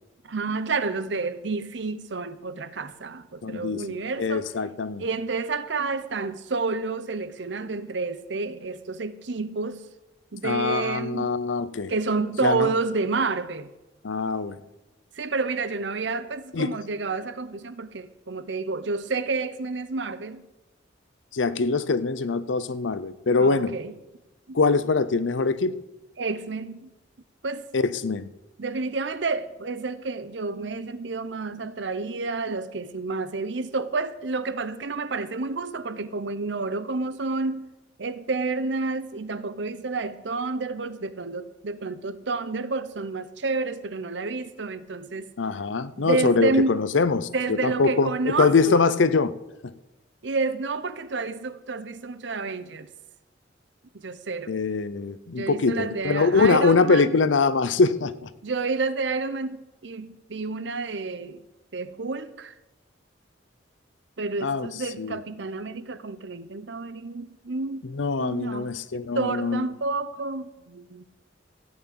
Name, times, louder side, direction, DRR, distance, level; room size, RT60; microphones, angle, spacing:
voice 1, 0.2-4.5 5.0-9.8 10.3-11.3 11.9-13.7 15.2-20.4 23.4-23.9 24.5-24.6 26.2-26.9 27.4-27.7 28.6-37.7 38.0-45.3 46.0-46.8 47.3-48.8 50.2-52.9 53.9-54.6 55.4-57.2 58.4-61.4 61.7-62.5 64.2-67.8 68.2-68.7 69.1-71.0, right 3 dB, 70° right, 0.7 m, -29 dB
voice 2, 3.4-3.8 4.2-5.0 10.4-11.9 12.4-12.7 14.0-14.6 16.5-16.8 21.3-23.7 24.5-25.7 27.7-28.3 45.4-49.3 54.5-58.3 64.4-64.7 65.0-65.2 67.9-69.6, left 4 dB, 80° left, 0.6 m, -23 dB
15.0 x 6.0 x 8.6 m
head